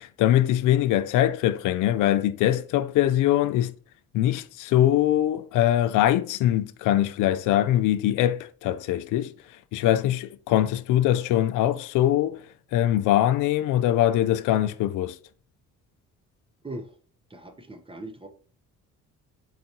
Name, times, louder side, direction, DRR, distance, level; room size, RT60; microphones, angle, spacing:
voice 1, 0.0-3.7 4.1-9.3 9.7-12.4 12.7-15.2, left 12 dB, 90° left, 0.5 m, -22 dB
voice 2, 16.6-17.0 17.3-18.3, right 1 dB, 15° right, 0.8 m, -39 dB
4.7 x 3.9 x 2.9 m
cardioid pair, 90°, 30 cm